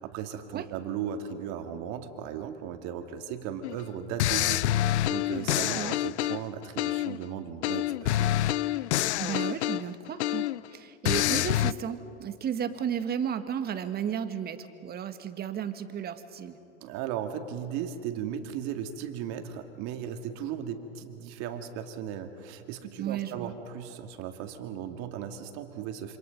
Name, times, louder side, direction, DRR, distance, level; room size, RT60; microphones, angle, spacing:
voice 1, 0.0-8.4 16.8-26.2, right 9 dB, 50° right, 6 dB, 2.4 m, -36 dB
sound 1, 3.6-3.8 4.2-7.2 7.6-10.7 11.0-11.7, left 14 dB, 70° left, 0.6 m, -27 dB
voice 2, 5.5-6.0 9.2-16.6 23.0-23.5, right 8 dB, 25° right, 9 dB, 1.6 m, -34 dB
27.0 x 26.0 x 5.3 m, 2.7 s
hypercardioid pair, 105°, 35 cm